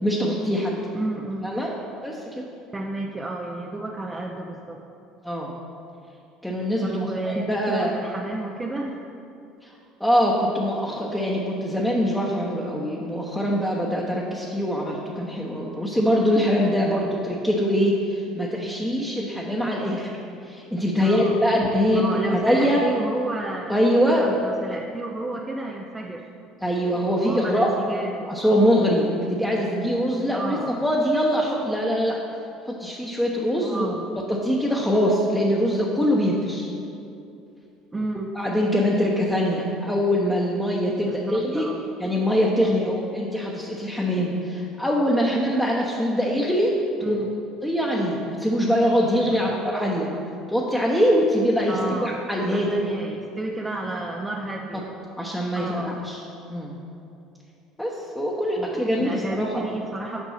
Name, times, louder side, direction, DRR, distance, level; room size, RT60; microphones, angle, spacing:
voice 1, 0.0-0.7 1.4-1.7 2.0-2.4 5.2-5.5 6.4-6.9 7.2-7.9 9.6-9.7 10.0-20.2 20.4-22.0 22.3-22.8 23.7-24.3 26.6-27.7 28.3-32.2 32.7-33.9 34.3-36.7 38.3-41.7 42.0-46.7 47.0-47.2 47.6-50.1 50.5-52.9 55.2-56.2 56.5-56.8 57.8-59.7, equal, 5° left, -4 dB, 1.0 m, -23 dB
voice 2, 0.9-1.6 2.7-4.8 6.8-9.0 16.8-17.1 21.0-21.4 21.9-23.8 24.1-26.2 27.2-28.6 30.3-30.9 33.6-34.1 37.9-38.3 41.0-41.9 42.7-42.8 47.0-47.3 49.3-49.5 51.7-52.2 52.5-54.9 55.5-56.0 58.6-60.2, right 2 dB, 20° right, 1 dB, 0.6 m, -31 dB
7.2 x 5.3 x 5.7 m, 2.7 s
supercardioid pair, 90°, 0 cm